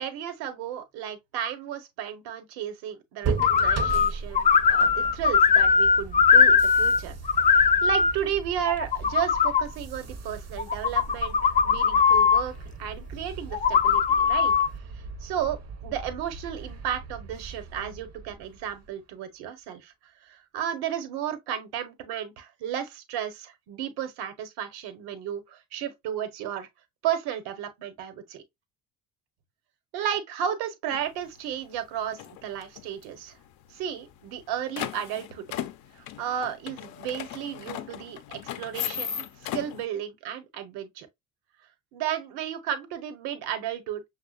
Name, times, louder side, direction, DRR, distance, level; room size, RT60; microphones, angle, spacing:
voice 1, 0.0-7.2 7.4-12.5 12.8-14.6 14.9-26.7 27.0-28.4 29.9-33.3 33.7-35.5 35.9-39.2 39.5-41.1 41.9-44.0, right 9 dB, 70° right, 1.1 m, -33 dB
sound 1, 3.2-18.9, right 5 dB, 40° right, 0.8 m, -38 dB
sound 2, 3.4-4.1 4.4-7.0 7.3-8.1 8.7-9.6 10.6-12.4 13.5-14.7, left 6 dB, 20° left, 0.4 m, -20 dB
sound 3, 30.9-31.0 31.5-31.8 32.1-33.0 33.3-33.4 33.6-33.7 34.2-39.8, left 11 dB, 60° left, 0.6 m, -36 dB
6.1 x 2.4 x 2.4 m
hypercardioid pair, 60°, 41 cm